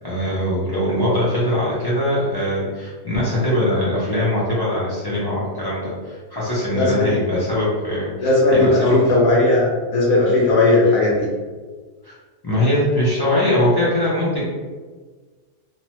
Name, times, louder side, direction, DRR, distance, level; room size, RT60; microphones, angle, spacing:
voice 1, 0.0-9.1 12.0-12.1 12.4-14.4, left 1 dB, 35° left, -9 dB, 0.3 m, -21 dB
voice 2, 6.7-7.1 8.2-11.3, left 2 dB, 75° left, -4 dB, 1.1 m, -17 dB
3.1 x 2.1 x 2.9 m, 1.4 s
omnidirectional pair, 1.5 m